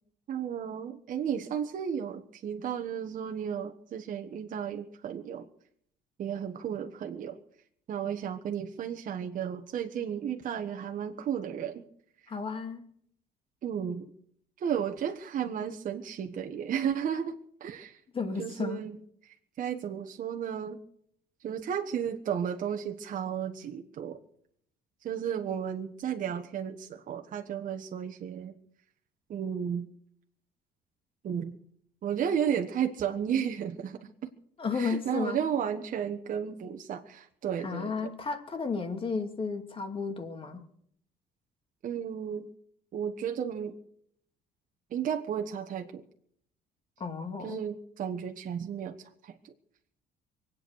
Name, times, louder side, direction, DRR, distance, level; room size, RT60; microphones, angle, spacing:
voice 1, 0.3-5.4 6.2-7.4 7.9-11.8 12.2-12.3 13.6-14.1 14.6-17.3 17.6-18.0 18.4-19.0 19.2-20.8 21.4-24.2 25.0-28.5 29.3-29.9 31.2-31.5 32.0-34.0 34.7-37.9 41.8-42.5 42.9-43.8 44.9-46.0 47.4-48.9 49.2-49.3, right 8 dB, 50° right, 1.4 m, -33 dB
voice 2, 12.3-12.8 18.1-18.8 34.6-35.4 37.6-40.6 47.0-47.6, left 5 dB, 30° left, 2.4 m, -33 dB
24.0 x 8.9 x 6.4 m
cardioid pair, 110°, 17 cm